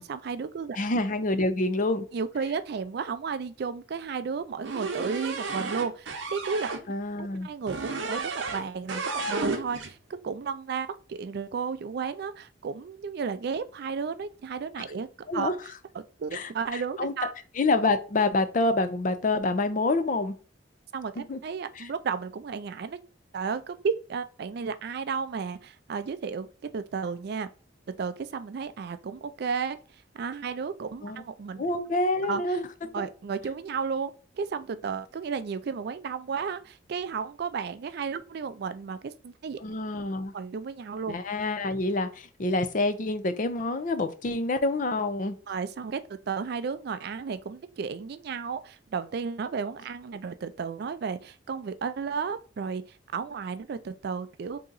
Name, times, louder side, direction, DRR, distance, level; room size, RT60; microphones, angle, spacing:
voice 1, 0.0-0.8 2.1-6.7 7.2-10.0 10.2-15.1 15.3-15.5 15.9-17.3 20.9-23.0 23.3-26.5 26.7-27.5 28.0-29.8 30.1-31.6 32.2-32.4 32.9-39.6 40.3-41.1 45.5-52.8 53.1-54.6, right 5 dB, 60° right, 0.4 m, -33 dB
voice 2, 0.8-2.1 6.9-7.5 15.3-15.6 16.3-17.1 17.5-20.3 21.2-21.4 21.8-21.9 31.0-31.2 31.6-32.7 33.0-33.1 39.6-40.3 41.1-45.4, left 2 dB, 45° left, 0.5 m, -27 dB
sound 1, 4.6-6.8 7.7-8.6 8.9-9.9, right 3 dB, 80° right, 0.7 m, -32 dB
3.7 x 2.8 x 3.8 m
head